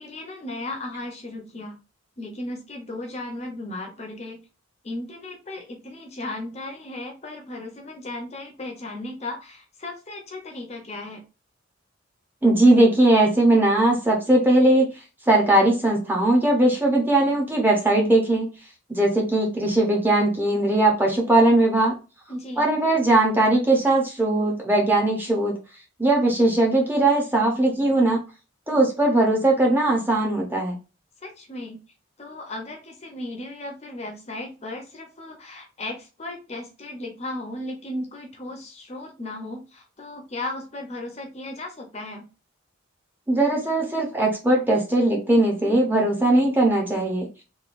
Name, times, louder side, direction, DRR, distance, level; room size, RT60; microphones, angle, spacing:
voice 1, 0.0-1.8 2.2-4.4 4.8-11.2 22.3-22.7 31.2-31.8 32.2-42.3, left 2 dB, 30° left, 3 dB, 0.6 m, -36 dB
voice 2, 12.4-14.9 15.3-18.5 18.9-21.9 22.6-25.6 26.0-28.2 28.7-30.7 43.3-47.3, right 1 dB, 10° right, -1 dB, 0.6 m, -19 dB
3.0 x 2.3 x 2.4 m, 0.31 s
head